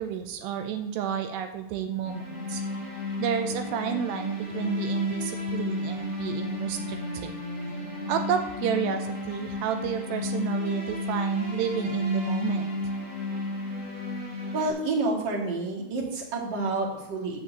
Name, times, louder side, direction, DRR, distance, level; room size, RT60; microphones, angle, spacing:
voice 1, 0.0-2.6 3.2-7.3 8.1-12.7, right 8 dB, 80° right, 6 dB, 2.4 m, -31 dB
sound 1, 2.0-14.7, left 2 dB, 30° right, 2.8 m, -32 dB
voice 2, 14.5-17.4, right 3 dB, 55° right, -2 dB, 1.2 m, -29 dB
7.9 x 6.4 x 7.9 m, 0.87 s
omnidirectional pair, 5.6 m